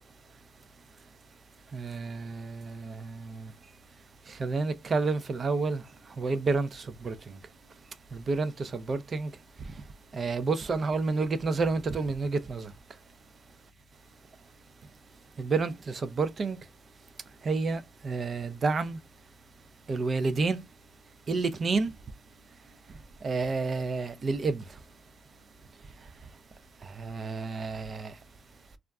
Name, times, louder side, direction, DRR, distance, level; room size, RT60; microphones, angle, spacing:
voice 1, 1.7-3.5 4.4-5.8 6.2-7.2 8.1-9.3 10.1-12.7 15.4-16.6 17.4-19.0 19.9-20.6 21.3-21.9 23.2-24.6 27.0-28.1, right 4 dB, 40° right, 0.4 m, -29 dB
2.4 x 2.1 x 3.5 m
cardioid pair, 90°, 0 cm